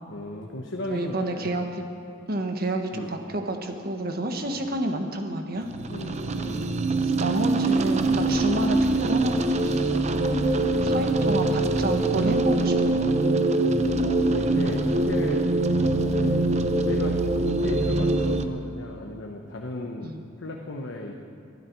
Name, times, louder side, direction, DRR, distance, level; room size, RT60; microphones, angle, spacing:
voice 1, 0.1-1.5 2.9-3.1 4.4-4.5 5.9-6.7 8.1-8.3 10.5-11.1 13.4-15.4 15.9-16.4 16.8-20.1 20.4-21.1, left 2 dB, 70° left, 1 dB, 1.1 m, -36 dB
voice 2, 0.9-1.8 2.3-5.7 7.0-9.4 9.7-10.4 10.8-13.1 20.0-20.2, right 1 dB, 50° right, 4 dB, 1.4 m, -29 dB
sound 1, 5.7-18.5, right 2 dB, 35° right, 0.7 m, -23 dB
22.5 x 12.5 x 4.6 m, 2.5 s
head